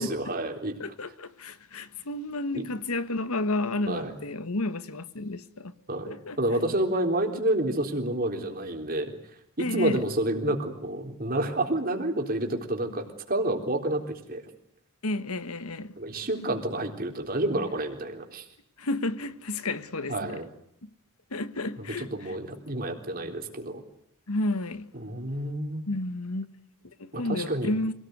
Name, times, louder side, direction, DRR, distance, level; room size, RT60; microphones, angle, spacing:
voice 1, 0.0-0.7 2.5-2.7 3.9-4.1 5.9-9.1 9.6-14.0 14.3-14.4 16.0-18.5 20.1-20.5 21.8-23.8 24.9-25.8 27.1-27.7, right 1 dB, 40° right, 3.8 m, -29 dB
voice 2, 0.8-5.7 6.1-6.4 9.6-10.0 15.0-16.0 18.8-20.4 20.8-20.9 21.3-22.3 24.3-24.9 25.9-26.5 27.0-27.9, left 2 dB, 80° left, 1.4 m, -31 dB
27.0 x 18.5 x 9.4 m
head